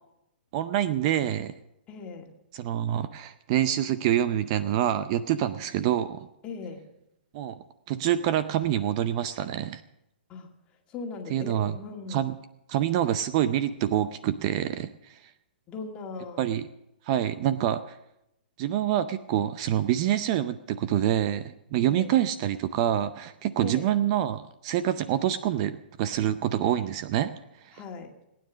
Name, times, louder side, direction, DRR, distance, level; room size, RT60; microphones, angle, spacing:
voice 1, 0.5-1.5 2.5-6.3 7.3-7.6 7.9-9.8 11.3-11.8 12.1-12.4 12.7-15.3 16.4-16.6 17.1-18.0 18.6-27.3 27.6-27.8, right 11 dB, 35° right, 13 dB, 0.6 m, -26 dB
voice 2, 1.9-2.3 6.4-6.8 10.3-10.5 10.9-12.2 15.7-16.4 21.8-22.1 23.6-23.9 27.7-28.1, left 4 dB, 20° left, 2 dB, 2.2 m, -39 dB
19.0 x 9.7 x 6.3 m, 0.85 s
hypercardioid pair, 150°, 5 cm